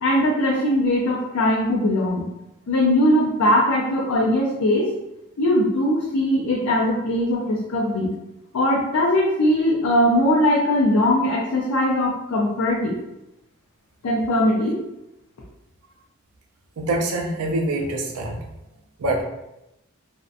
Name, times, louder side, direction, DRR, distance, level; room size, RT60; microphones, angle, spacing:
voice 1, 0.0-2.3 2.7-4.9 5.4-8.1 8.5-13.0 14.0-14.8, left 1 dB, 75° left, -4 dB, 0.4 m, -20 dB
voice 2, 16.8-18.4 19.0-19.2, right 2 dB, 85° right, 1 dB, 0.5 m, -25 dB
2.7 x 2.1 x 2.4 m, 0.90 s
head